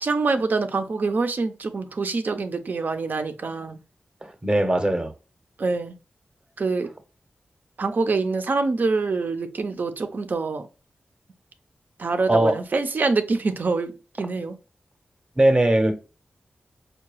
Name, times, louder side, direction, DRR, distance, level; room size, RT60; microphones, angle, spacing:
voice 1, 0.0-3.8 5.6-6.0 6.6-6.9 7.8-10.7 12.0-14.6, right 3 dB, 60° right, 0.5 m, -25 dB
voice 2, 4.2-5.1 12.3-12.6 15.4-16.0, right 1 dB, 25° right, 0.7 m, -20 dB
4.5 x 2.2 x 3.1 m
cardioid pair, 60°, 3 cm